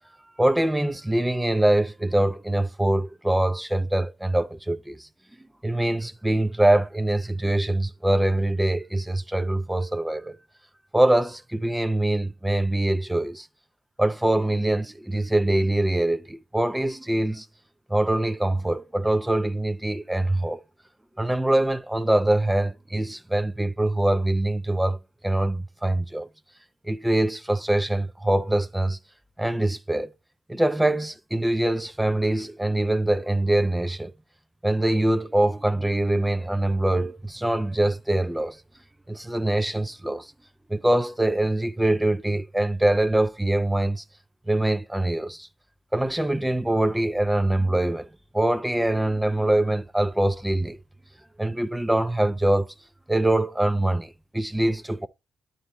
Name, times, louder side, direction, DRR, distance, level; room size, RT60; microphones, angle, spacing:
voice 1, 0.4-5.1 5.6-10.4 10.9-13.5 14.0-17.5 17.9-20.6 21.2-26.3 26.8-29.0 29.4-30.1 30.5-34.1 34.6-38.6 39.1-40.3 40.7-44.0 44.5-45.5 45.9-48.1 48.3-50.8 51.4-52.7 53.1-55.1, right 1 dB, 10° right, 0.6 m, -23 dB
9.5 x 4.0 x 3.3 m
hypercardioid pair, 45°, 0 cm